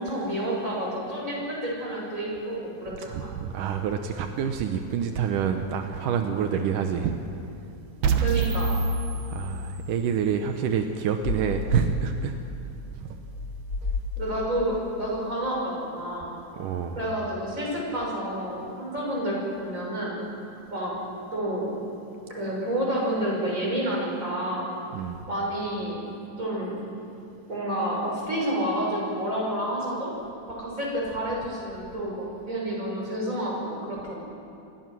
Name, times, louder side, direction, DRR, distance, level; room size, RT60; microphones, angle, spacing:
voice 1, 0.0-3.3 8.2-8.7 14.2-16.3 16.9-20.2 20.7-20.9 21.3-21.7 22.3-24.7 25.3-26.0 26.4-26.7 27.5-30.1 30.5-34.2, right 1 dB, 20° right, -3 dB, 6.6 m, -29 dB
voice 2, 3.1-7.2 9.3-12.3 13.0-13.2 16.5-17.0 24.9-25.2, right 7 dB, 80° right, 6 dB, 2.6 m, -27 dB
sound 1, 8.0-10.1, right 4 dB, 65° right, 2.4 m, -26 dB
sound 2, 11.2-14.6, left 3 dB, 50° left, 1.5 m, -32 dB
28.0 x 20.5 x 6.1 m, 2.7 s
omnidirectional pair, 3.7 m